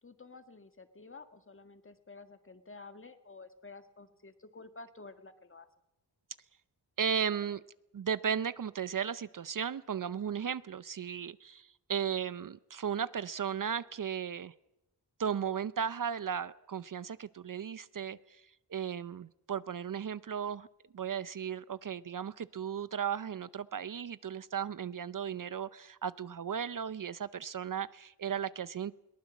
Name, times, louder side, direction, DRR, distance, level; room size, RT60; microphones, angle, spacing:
voice 1, 0.0-5.7, left 3 dB, 30° left, 8 dB, 1.8 m, -51 dB
voice 2, 7.0-7.6 7.9-14.5 15.2-18.2 18.7-20.7 20.9-28.9, right 7 dB, 50° right, 16 dB, 0.7 m, -35 dB
22.0 x 19.0 x 7.3 m, 0.90 s
wide cardioid pair, 85°, 42 cm